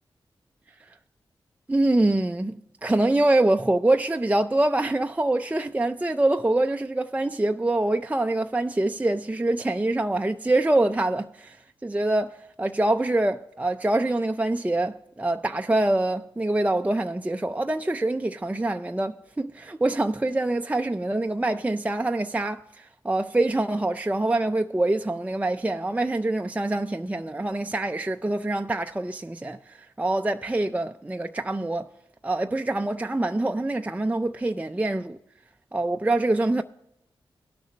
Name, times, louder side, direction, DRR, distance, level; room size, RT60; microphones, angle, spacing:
voice 1, 1.7-31.9 32.2-35.2 35.7-36.6, right 2 dB, 15° right, 0.4 m, -25 dB
18.0 x 6.3 x 3.2 m
cardioid pair, 45°, 10 cm